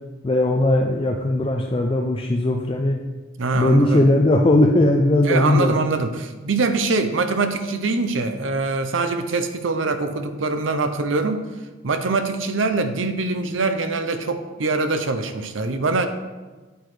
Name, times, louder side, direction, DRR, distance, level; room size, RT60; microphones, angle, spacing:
voice 1, 0.2-3.0 3.5-5.8, left 1 dB, 25° left, 2 dB, 0.4 m, -18 dB
voice 2, 3.4-4.1 5.2-11.4 11.8-16.1, right 3 dB, 75° right, 8 dB, 0.7 m, -23 dB
8.0 x 8.0 x 3.3 m, 1.2 s
head